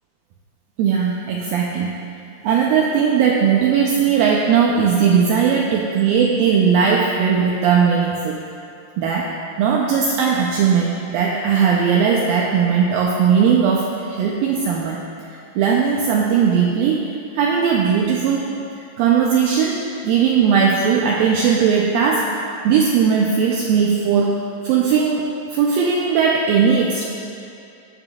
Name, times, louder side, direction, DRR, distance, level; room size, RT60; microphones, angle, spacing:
voice 1, 0.8-2.0 2.4-8.4 9.0-15.0 15.3-17.0 17.3-18.5 19.0-22.3 22.6-27.0, right 6 dB, 80° right, -2 dB, 2.1 m, -18 dB
18.5 x 7.6 x 2.3 m, 2.6 s
omnidirectional pair, 4.7 m